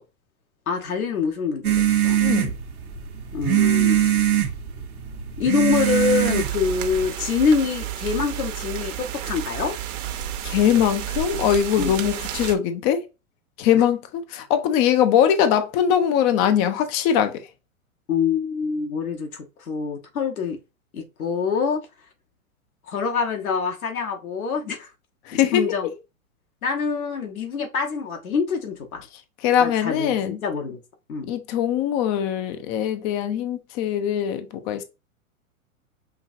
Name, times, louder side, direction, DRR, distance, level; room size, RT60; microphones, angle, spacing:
voice 1, 0.7-1.7 2.0-2.2 3.3-4.3 5.4-9.8 11.8-12.0 13.7-13.8 18.1-20.6 20.9-21.8 22.9-24.9 25.3-25.9 26.6-29.0 29.6-30.8 31.1-31.3, left 6 dB, 80° left, 1.4 m, -25 dB
sound 1, 1.6-7.1, right 11 dB, 85° right, 1.1 m, -22 dB
voice 2, 2.2-2.5 10.4-13.0 13.6-17.3 25.3-25.6 29.4-30.4 31.3-34.8, left 9 dB, 20° left, 0.3 m, -21 dB
sound 2, 5.7-12.5, right 10 dB, 60° right, 1.0 m, -31 dB
5.7 x 2.8 x 2.6 m
hypercardioid pair, 110°, 42 cm